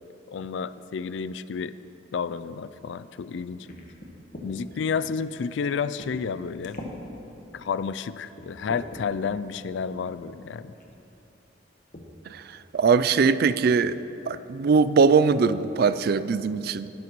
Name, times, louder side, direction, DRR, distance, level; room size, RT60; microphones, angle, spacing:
voice 1, 0.3-1.8 2.1-3.7 4.4-6.8 7.5-10.7, left 6 dB, 70° left, 15 dB, 0.3 m, -31 dB
sound 1, 3.7-4.5 5.2-5.4 6.0-6.3 6.6-7.0 7.6-7.7 8.3-9.0 10.1-10.3 10.8-11.0 11.9-12.1 12.5-12.6 12.9-13.3, left 1 dB, 45° left, 1.3 m, -42 dB
voice 2, 12.7-14.0 14.3-16.9, right 5 dB, 55° right, 14 dB, 0.3 m, -21 dB
19.0 x 11.0 x 3.1 m, 2.9 s
head